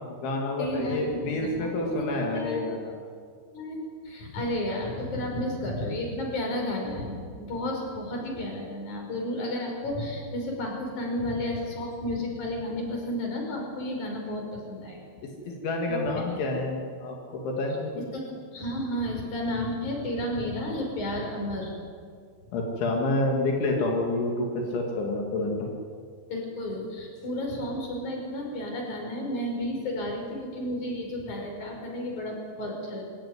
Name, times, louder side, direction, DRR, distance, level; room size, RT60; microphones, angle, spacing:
voice 1, 0.0-3.0 15.5-17.9 22.5-25.7, left 2 dB, 80° left, 0 dB, 4.9 m, -28 dB
voice 2, 0.6-2.6 3.5-3.8 4.0-15.0 15.9-16.4 18.1-21.7 26.3-33.0, left 1 dB, 40° left, 1 dB, 6.6 m, -32 dB
23.5 x 18.5 x 9.7 m, 2.1 s
omnidirectional pair, 5.3 m